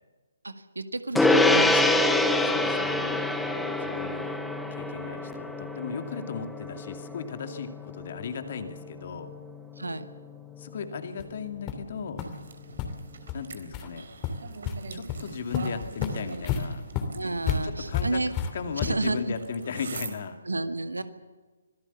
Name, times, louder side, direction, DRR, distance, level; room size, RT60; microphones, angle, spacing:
voice 1, 0.4-2.1 9.8-10.1 17.1-18.3 18.8-19.4 20.5-21.0, right 2 dB, 70° right, 9 dB, 1.9 m, -31 dB
Gong, 1.2-10.9, left 2 dB, 5° left, 1.2 m, -27 dB
voice 2, 2.4-4.4 4.7-9.3 10.6-12.2 13.3-14.1 14.9-16.8 17.6-18.2 18.5-20.4, left 6 dB, 40° left, 7 dB, 2.4 m, -36 dB
sound 1, 11.2-11.3 11.7-11.8 12.2-12.3 12.7-12.9 13.3-13.4 13.7-13.9 14.2-14.7 15.1-15.2 15.5-19.2, left 7 dB, 20° left, 2.9 m, -31 dB
sound 2, 12.2-20.1, right 4 dB, 55° right, 3.8 m, -44 dB
25.5 x 18.0 x 7.1 m, 1.3 s
figure-of-eight pair, 135°, 0 cm